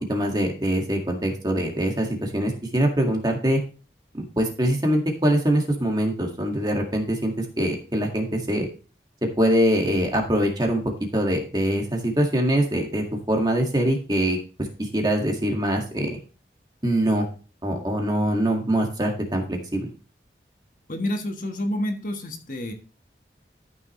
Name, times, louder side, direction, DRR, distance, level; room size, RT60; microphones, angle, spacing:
voice 1, 0.1-3.6 4.1-8.7 9.4-10.8 11.1-14.4 14.8-16.2 16.8-17.3 17.6-19.9, right 1 dB, 25° right, 2 dB, 1.9 m, -23 dB
voice 2, 20.9-22.7, left 1 dB, 50° left, 4 dB, 1.4 m, -28 dB
13.5 x 6.4 x 3.1 m, 0.36 s
head